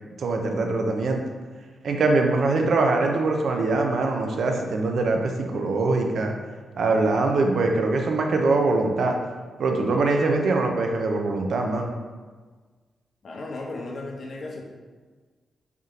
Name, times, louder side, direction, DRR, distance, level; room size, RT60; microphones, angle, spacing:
voice 1, 0.2-1.2 1.8-6.3 6.8-9.2 9.6-11.9, right 3 dB, 70° right, 2 dB, 0.5 m, -23 dB
voice 2, 13.2-14.6, left 2 dB, 55° left, -1 dB, 0.7 m, -35 dB
3.5 x 2.8 x 3.7 m, 1.4 s
cardioid pair, 70°, 0 cm